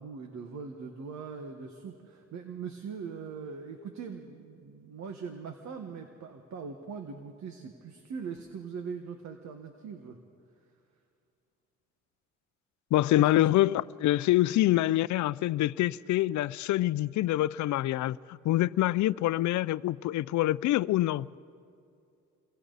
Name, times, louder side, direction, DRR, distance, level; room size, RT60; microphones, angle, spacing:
voice 1, 0.0-10.2 13.2-13.5, right 5 dB, 65° right, 1.6 m, -41 dB
voice 2, 12.9-21.3, left 15 dB, 70° left, 0.5 m, -26 dB
29.5 x 23.0 x 4.1 m
cardioid pair, 90°, 30 cm